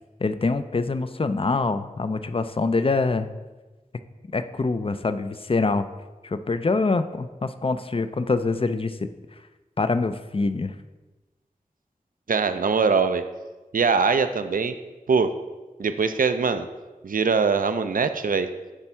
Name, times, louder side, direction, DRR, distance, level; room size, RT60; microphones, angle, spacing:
voice 1, 0.2-3.3 4.3-5.9 6.2-9.1 9.8-10.7, left 3 dB, 40° left, 11 dB, 0.4 m, -25 dB
voice 2, 12.3-13.2 13.7-14.7 15.1-15.3 15.8-16.7 17.0-18.5, right 5 dB, 70° right, 10 dB, 0.4 m, -22 dB
9.9 x 3.5 x 4.4 m, 1.2 s
wide cardioid pair, 60°, 15 cm